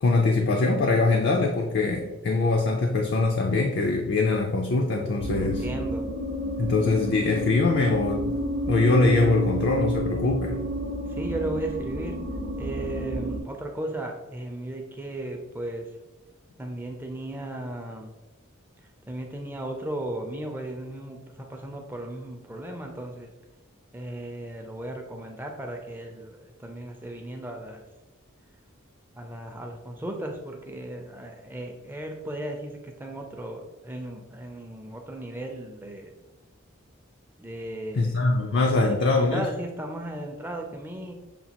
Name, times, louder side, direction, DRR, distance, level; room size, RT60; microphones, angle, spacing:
voice 1, 0.0-5.7 6.6-8.4 8.7-10.6 37.9-39.5, left 3 dB, 55° left, 2 dB, 0.4 m, -23 dB
sound 1, 5.2-13.4, right 1 dB, 45° right, 0.7 m, -31 dB
voice 2, 5.3-6.0 11.1-12.2 12.6-15.9 16.6-18.1 19.1-23.3 23.9-27.8 29.1-36.1 37.4-38.2 38.8-41.1, right 1 dB, 10° right, 2 dB, 0.4 m, -36 dB
6.8 x 2.3 x 2.8 m, 1.1 s
head